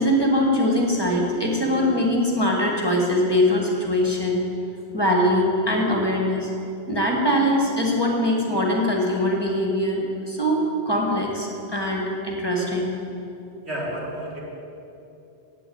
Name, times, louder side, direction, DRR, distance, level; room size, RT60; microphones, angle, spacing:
voice 1, 0.0-4.4 4.9-6.5 6.9-12.9, left 1 dB, 25° left, -1 dB, 1.5 m, -22 dB
voice 2, 13.6-14.4, right 1 dB, 80° right, -3 dB, 2.4 m, -31 dB
8.4 x 8.3 x 8.6 m, 2.8 s
omnidirectional pair, 1.1 m